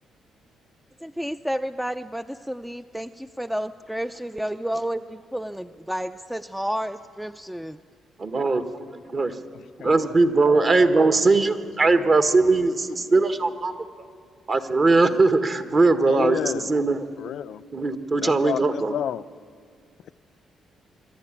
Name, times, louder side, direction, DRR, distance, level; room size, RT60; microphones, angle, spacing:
voice 1, 1.0-7.8 9.7-9.9, equal, 5° right, 10 dB, 0.4 m, -31 dB
voice 2, 8.2-8.6 9.1-9.4 9.8-13.7 14.5-17.0 17.7-18.9, right 3 dB, 40° right, 9 dB, 1.4 m, -20 dB
voice 3, 9.5-10.1 10.5-10.9 16.1-16.7 17.2-17.6 18.2-19.2, left 9 dB, 70° left, 12 dB, 0.4 m, -31 dB
26.0 x 11.5 x 10.0 m, 2.2 s
cardioid pair, 90°, 0 cm